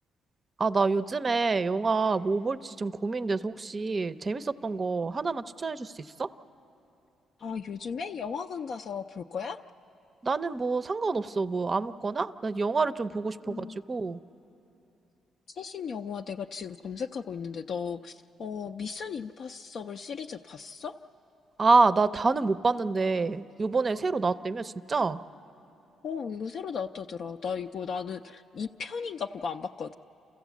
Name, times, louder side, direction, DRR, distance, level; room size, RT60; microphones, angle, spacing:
voice 1, 0.6-6.3 10.2-14.2 21.6-25.2, right 4 dB, 35° right, 13 dB, 0.5 m, -27 dB
voice 2, 7.4-9.6 13.4-13.8 15.5-21.0 26.0-29.9, left 6 dB, 60° left, 5 dB, 0.4 m, -36 dB
28.5 x 14.5 x 8.2 m, 2.9 s
cardioid pair, 90°, 0 cm